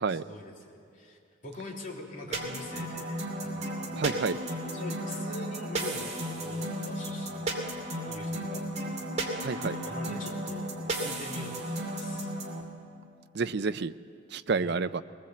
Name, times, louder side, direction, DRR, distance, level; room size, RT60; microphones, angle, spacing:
voice 1, 0.1-0.7 0.9-3.9 4.7-7.6 8.0-9.0 9.8-10.7 11.0-12.3 14.5-14.9, left 1 dB, 40° left, -2 dB, 3.4 m, -44 dB
sound 1, 2.3-12.6, right 1 dB, 35° right, 2.7 m, -34 dB
voice 2, 3.9-4.4 9.4-9.8 13.3-13.9 14.3-15.0, right 4 dB, 55° right, 12 dB, 0.5 m, -29 dB
21.0 x 20.0 x 7.9 m, 2.5 s
head